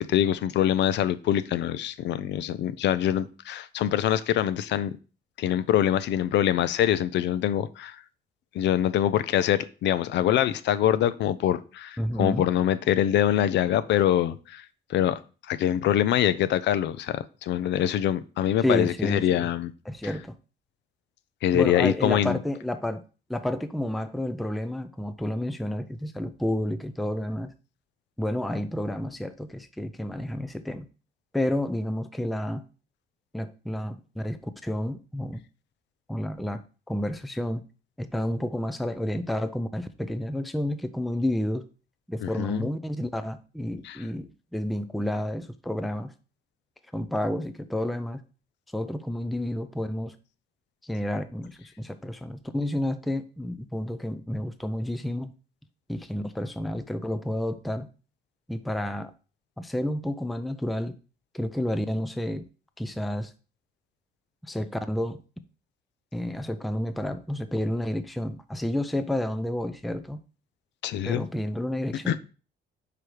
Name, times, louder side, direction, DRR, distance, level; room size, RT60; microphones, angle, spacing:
voice 1, 0.0-5.0 5.4-8.0 8.5-14.6 14.9-15.2 15.5-19.7 21.4-22.4 42.2-42.7 43.8-44.0 70.8-71.3 72.1-72.2, left 11 dB, 65° left, 15 dB, 0.5 m, -24 dB
voice 2, 12.0-12.4 18.6-19.5 19.9-20.3 21.5-23.0 23.3-27.5 28.2-30.9 31.3-32.6 33.3-35.4 36.1-36.6 36.9-37.6 38.0-41.7 42.1-46.1 46.9-48.2 48.7-50.1 50.8-55.3 55.9-57.9 58.5-59.1 59.6-60.9 61.3-62.4 62.8-63.3 64.4-65.2 66.1-70.2 71.0-72.2, left 1 dB, ahead, 10 dB, 0.4 m, -30 dB
5.0 x 4.8 x 4.5 m, 0.35 s
cardioid pair, 150°, 19 cm